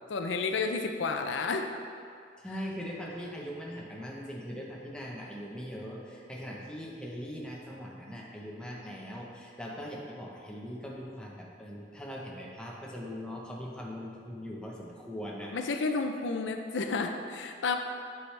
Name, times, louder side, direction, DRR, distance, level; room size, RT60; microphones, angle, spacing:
voice 1, 0.1-1.7 15.5-17.8, left 4 dB, 85° left, 5 dB, 0.5 m, -31 dB
voice 2, 2.4-15.6, equal, 5° left, -3 dB, 0.8 m, -41 dB
8.5 x 4.9 x 3.2 m, 2.3 s
head